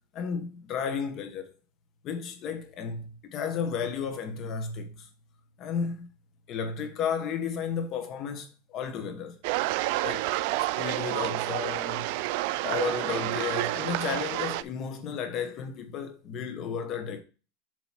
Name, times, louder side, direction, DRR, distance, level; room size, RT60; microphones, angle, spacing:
voice 1, 0.1-1.5 2.0-5.1 5.6-6.1 6.5-9.4 10.0-10.3 10.8-12.1 12.6-17.2, left 6 dB, 40° left, 1.1 m, -33 dB
sound 1, 9.4-14.6, right 17 dB, 60° right, 0.3 m, -29 dB
7.2 x 3.0 x 5.7 m
supercardioid pair, 140°, 0 cm